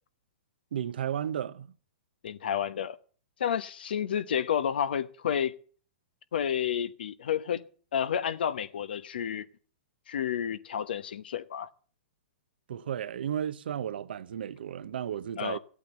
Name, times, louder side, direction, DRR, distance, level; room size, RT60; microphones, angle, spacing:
voice 1, 0.7-1.7 12.7-15.6, right 9 dB, 70° right, 0.8 m, -33 dB
voice 2, 2.2-3.0 3.4-5.5 6.3-7.6 7.9-9.5 10.1-11.7 15.4-15.6, left 9 dB, 70° left, 1.0 m, -30 dB
15.5 x 8.6 x 6.9 m
hypercardioid pair, 125°, 5 cm